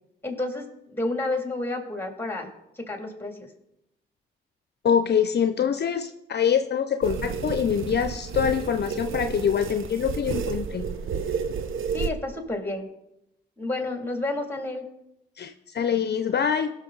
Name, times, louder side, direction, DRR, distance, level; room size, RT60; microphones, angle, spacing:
voice 1, 0.2-0.7 1.0-2.5 2.8-3.5 11.9-12.9 13.6-14.9, left 2 dB, 10° left, 3 dB, 2.5 m, -30 dB
voice 2, 4.8-10.9 15.4-16.7, left 8 dB, 55° left, 9 dB, 0.6 m, -24 dB
sound 1, 7.0-12.1, right 6 dB, 75° right, 0.7 m, -31 dB
16.5 x 6.4 x 3.9 m, 0.85 s
cardioid pair, 55°, 21 cm